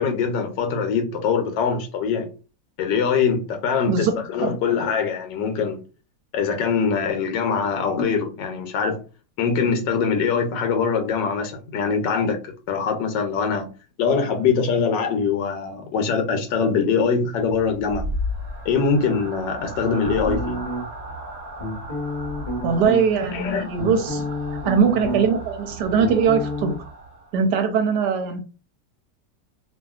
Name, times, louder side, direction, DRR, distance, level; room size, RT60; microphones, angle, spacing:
voice 1, 0.0-2.3 2.8-5.8 6.3-9.0 9.4-13.7 14.0-18.1 18.6-20.6 23.2-23.7, left 5 dB, 80° left, 1.2 m, -23 dB
sound 1, 17.4-27.4, equal, 50° right, 1.0 m, -35 dB
sound 2, 20.2-21.1 21.6-23.0 23.5-25.4 25.7-26.8, equal, 30° left, 0.7 m, -29 dB
voice 2, 22.6-24.2 24.6-26.8 27.3-28.4, right 6 dB, 75° right, 1.1 m, -21 dB
2.7 x 2.6 x 2.3 m
omnidirectional pair, 1.9 m